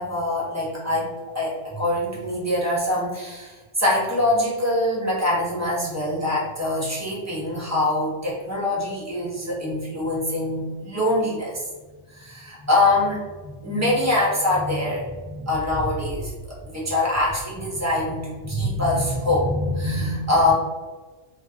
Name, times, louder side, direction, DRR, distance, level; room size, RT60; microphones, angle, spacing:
voice 1, 0.0-11.7 12.1-20.5, left 1 dB, 15° right, -6 dB, 0.6 m, -24 dB
2.4 x 2.3 x 3.7 m, 1.3 s
omnidirectional pair, 1.3 m